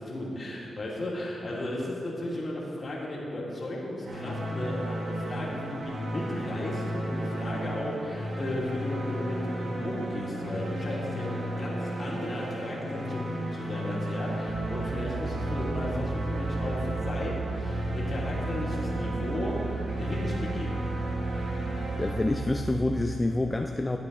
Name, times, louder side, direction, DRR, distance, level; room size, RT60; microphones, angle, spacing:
voice 1, 0.0-20.7, left 1 dB, 45° left, -4 dB, 2.5 m, -35 dB
sound 1, 4.0-23.0, equal, 65° right, 2.0 m, -34 dB
sound 2, 4.8-17.7, left 1 dB, 5° right, 2.6 m, -54 dB
sound 3, 14.5-23.2, right 4 dB, 85° right, 0.8 m, -35 dB
voice 2, 22.0-24.0, left 2 dB, 25° left, 5 dB, 0.5 m, -27 dB
12.5 x 8.0 x 4.0 m, 2.6 s
cardioid pair, 65°, 0 cm